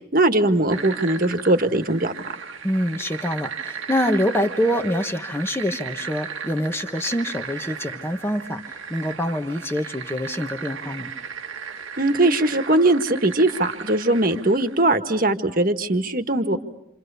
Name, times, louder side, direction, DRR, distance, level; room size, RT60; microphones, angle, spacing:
voice 1, 0.1-2.3 12.0-16.6, right 2 dB, 45° right, 8 dB, 1.6 m, -20 dB
sound 1, 0.7-14.9, right 6 dB, 85° right, 1.6 m, -36 dB
voice 2, 2.6-8.6 8.9-11.1, equal, 10° left, 7 dB, 1.3 m, -25 dB
29.0 x 28.5 x 6.9 m, 0.85 s
head